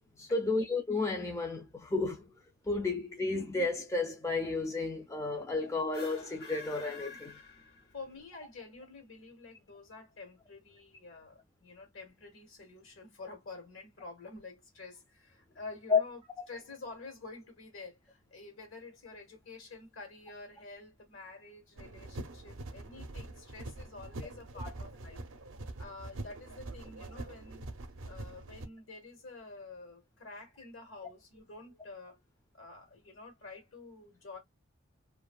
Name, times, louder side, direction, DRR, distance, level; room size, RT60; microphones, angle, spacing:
voice 1, 0.2-2.3 2.6-7.4 15.9-16.0, left 3 dB, 15° left, 0.4 m, -32 dB
sound 1, 5.8-8.2, left 3 dB, 50° left, 0.9 m, -48 dB
voice 2, 7.9-16.2 16.5-25.2 25.8-27.7 28.0-32.2 32.5-34.4, left 3 dB, 75° left, 1.4 m, -49 dB
sound 2, 21.8-28.7, right 2 dB, 70° right, 0.5 m, -44 dB
2.7 x 2.5 x 2.2 m
head